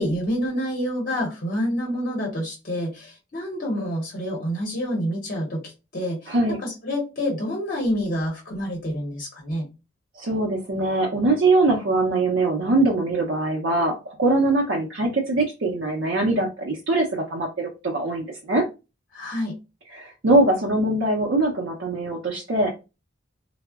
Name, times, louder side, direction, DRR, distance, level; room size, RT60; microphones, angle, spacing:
voice 1, 0.0-9.7 19.1-19.5, equal, 45° left, 0 dB, 0.8 m, -28 dB
voice 2, 6.3-6.6 10.2-18.6 19.9-22.7, right 2 dB, 60° right, -2 dB, 0.5 m, -22 dB
3.5 x 2.0 x 2.3 m, 0.28 s
head